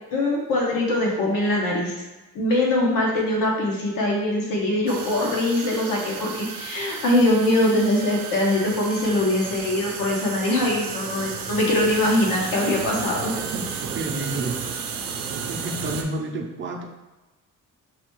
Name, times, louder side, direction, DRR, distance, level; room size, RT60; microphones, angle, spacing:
voice 1, 0.1-1.9 2.3-13.3, left 1 dB, 80° left, -2 dB, 1.0 m, -22 dB
sound 1, 4.9-16.0, right 6 dB, 85° right, 0.6 m, -33 dB
voice 2, 13.3-14.6 15.3-16.8, right 2 dB, 35° right, 2 dB, 0.5 m, -31 dB
5.9 x 2.3 x 3.0 m, 1.1 s
wide cardioid pair, 160°, 33 cm